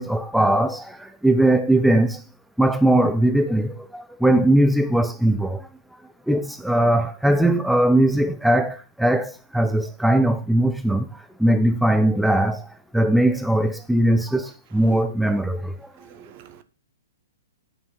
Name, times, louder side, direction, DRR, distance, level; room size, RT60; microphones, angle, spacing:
voice 1, 0.0-2.2 2.6-5.7 6.3-11.1 11.4-12.7 12.9-15.8, right 1 dB, ahead, 0.7 m, -20 dB
voice 2, 16.0-16.6, right 10 dB, 45° right, 1.1 m, -40 dB
9.0 x 6.4 x 5.5 m
figure-of-eight pair, 115°, 0 cm